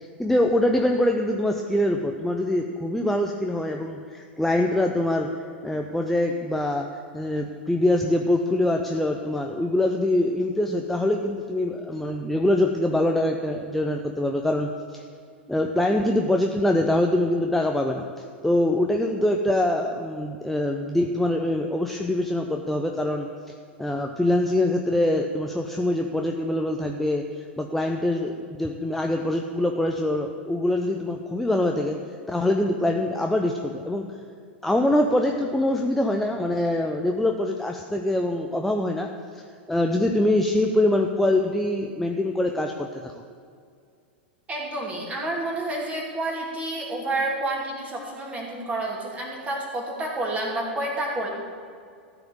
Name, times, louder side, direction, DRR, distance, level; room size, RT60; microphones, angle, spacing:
voice 1, 0.2-5.3 5.6-6.9 7.1-15.0 15.5-18.1 18.4-23.3 23.8-27.2 27.6-32.0 32.3-34.1 34.6-39.1 39.7-43.1, left 1 dB, 5° left, 2 dB, 0.6 m, -24 dB
voice 2, 44.5-51.3, right 2 dB, 20° right, -1 dB, 2.6 m, -29 dB
14.0 x 5.0 x 8.5 m, 2.3 s
figure-of-eight pair, 95°, 6 cm